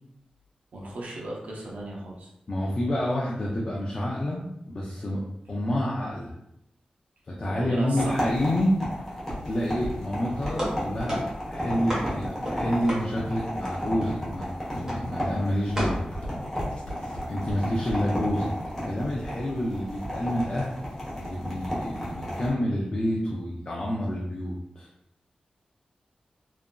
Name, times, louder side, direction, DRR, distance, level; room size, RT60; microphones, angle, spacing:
voice 1, 0.7-2.3 7.4-8.3, right 1 dB, 75° right, -3 dB, 0.5 m, -36 dB
voice 2, 2.5-5.2 5.5-6.3 7.3-8.7 9.1-11.2 11.5-16.0 17.3-18.5 18.8-20.7 21.1-24.9, left 1 dB, 35° left, -4 dB, 0.4 m, -28 dB
sound 1, 8.0-22.5, equal, 15° left, 0.9 m, -33 dB
Walk footsteps, 9.1-13.1 13.7-14.2 14.7-15.1 15.4-18.3 18.6-18.7, equal, 55° left, 0.8 m, -39 dB
sound 2, 10.5-13.7 14.0-14.5 14.9-15.2 15.8-16.0, equal, 20° right, 0.9 m, -32 dB
2.8 x 2.5 x 2.2 m, 0.81 s
wide cardioid pair, 145°, 2 cm